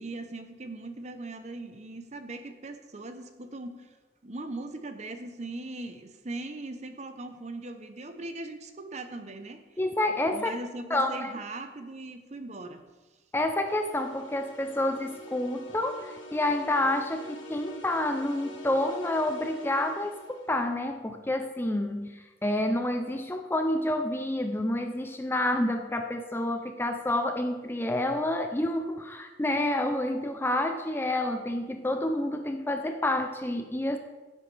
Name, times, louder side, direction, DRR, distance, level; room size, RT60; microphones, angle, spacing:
voice 1, 0.0-4.0 4.2-9.6 10.3-12.8, right 2 dB, 35° right, 8 dB, 0.8 m, -39 dB
voice 2, 9.8-10.5 10.9-11.3 13.3-34.0, left 1 dB, 10° left, 6 dB, 0.5 m, -29 dB
sound 1, 13.6-20.6, equal, 85° left, 1.7 m, -45 dB
15.0 x 7.8 x 3.3 m, 1.2 s
head